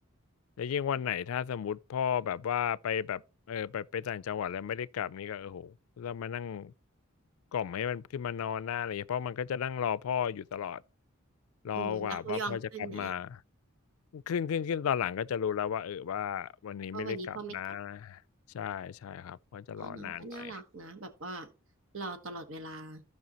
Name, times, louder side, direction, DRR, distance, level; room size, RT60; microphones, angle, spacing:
voice 1, 0.6-3.2 3.5-6.7 7.5-10.8 11.6-13.4 14.1-18.2 18.5-20.6, left 8 dB, 80° left, 0.4 m, -34 dB
voice 2, 11.7-13.1 16.9-17.8 19.8-21.5 21.9-23.0, right 3 dB, 65° right, 1.4 m, -40 dB
15.0 x 5.5 x 2.9 m
head